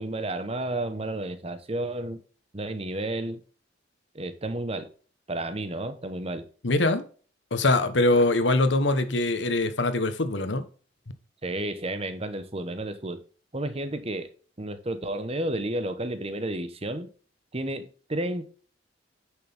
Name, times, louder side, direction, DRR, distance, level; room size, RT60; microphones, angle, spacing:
voice 1, 0.0-2.2 2.5-3.4 4.1-4.9 5.3-6.5 11.4-13.2 13.5-14.3 14.6-17.1 17.5-18.5, right 1 dB, 30° right, 1.0 m, -31 dB
voice 2, 6.6-7.0 7.5-10.6, left 2 dB, 70° left, 1.2 m, -23 dB
9.6 x 6.3 x 3.5 m
head